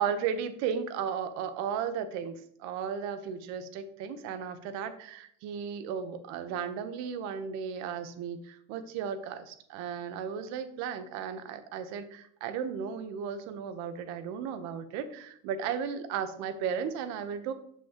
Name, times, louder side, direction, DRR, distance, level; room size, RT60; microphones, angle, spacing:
voice 1, 0.0-17.5, right 7 dB, 60° right, 10 dB, 1.0 m, -35 dB
7.5 x 6.1 x 2.9 m, 0.68 s
cardioid pair, 145°, 31 cm